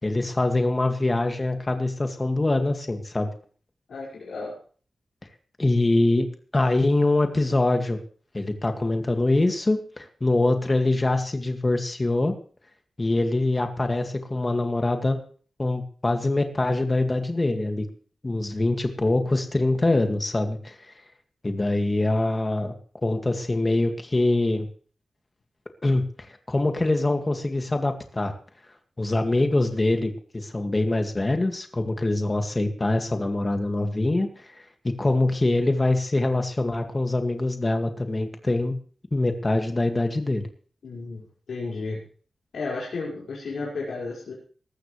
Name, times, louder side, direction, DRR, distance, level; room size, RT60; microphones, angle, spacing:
voice 1, 0.0-3.3 5.6-6.3 6.5-8.0 8.3-12.3 13.0-15.2 15.6-17.9 18.2-20.9 21.4-22.7 23.0-24.7 25.8-28.4 29.0-34.5 34.8-38.8 39.1-40.4, left 2 dB, 25° left, 5 dB, 2.1 m, -24 dB
voice 2, 3.9-4.6 40.8-41.2 41.5-42.0 42.5-44.3, left 3 dB, 85° left, -5 dB, 5.3 m, -33 dB
20.0 x 14.5 x 3.3 m, 0.42 s
wide cardioid pair, 105°, 0 cm